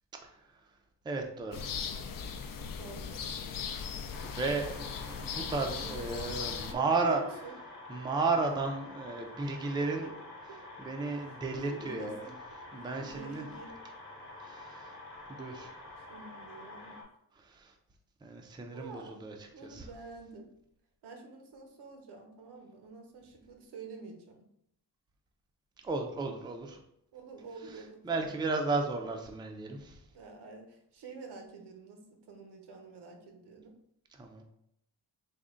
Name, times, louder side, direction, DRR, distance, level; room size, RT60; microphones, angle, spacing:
voice 1, 1.1-1.6 4.2-7.2 7.9-10.1 10.8-12.2 12.7-13.4 14.4-14.9 15.3-15.7 17.5-17.7 18.2-19.3 19.7-19.9 25.8-26.8 28.0-30.0 34.2-34.4, right 3 dB, 10° right, 3 dB, 0.3 m, -33 dB
sound 1, 1.5-6.7, left 6 dB, 60° left, 0.5 m, -38 dB
voice 2, 2.8-3.4 4.6-4.9 5.7-5.9 6.7-7.6 8.4-8.6 9.8-10.1 10.5-10.6 11.1-12.3 12.7-13.8 16.0-17.0 18.7-19.3 19.5-20.5 21.0-24.5 27.1-28.3 29.1-29.2 30.1-33.8, right 4 dB, 90° right, 4 dB, 0.8 m, -48 dB
sound 2, 4.1-17.0, left 2 dB, 30° left, 0.9 m, -48 dB
3.6 x 2.1 x 3.7 m, 0.77 s
wide cardioid pair, 115°, 39 cm